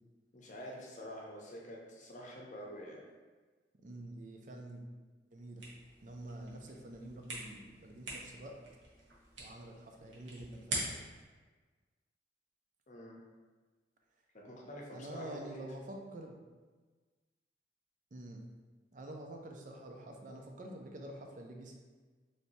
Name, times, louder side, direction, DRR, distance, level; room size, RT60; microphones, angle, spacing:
voice 1, 0.3-3.0 12.9-13.2 14.3-15.6, equal, 45° left, -2 dB, 0.7 m, -47 dB
voice 2, 3.8-4.8 5.3-5.6 6.0-8.6 9.4-10.9 14.9-16.4 18.1-18.4 18.9-21.8, right 1 dB, 45° right, 2 dB, 0.5 m, -47 dB
sound 1, 5.5-11.2, right 2 dB, 90° right, 1.0 m, -44 dB
3.3 x 2.7 x 4.1 m, 1.4 s
head